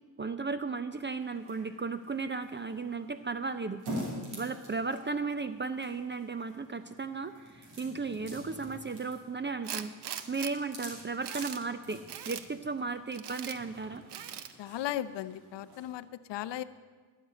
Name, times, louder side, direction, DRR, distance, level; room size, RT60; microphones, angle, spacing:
voice 1, 0.2-3.8 4.4-7.3 7.6-9.9 10.3-14.0, right 4 dB, 25° right, 11 dB, 0.5 m, -35 dB
sound 1, 1.2-15.9, equal, 80° right, 2.6 m, -47 dB
Tools, 9.6-10.5 11.0-11.6 12.1-12.5 13.1-13.6 14.1-14.5, right 10 dB, 55° right, 0.7 m, -40 dB
voice 2, 14.6-16.6, left 12 dB, 60° left, 15 dB, 0.7 m, -36 dB
12.0 x 5.1 x 8.0 m, 1.4 s
supercardioid pair, 50°, 50 cm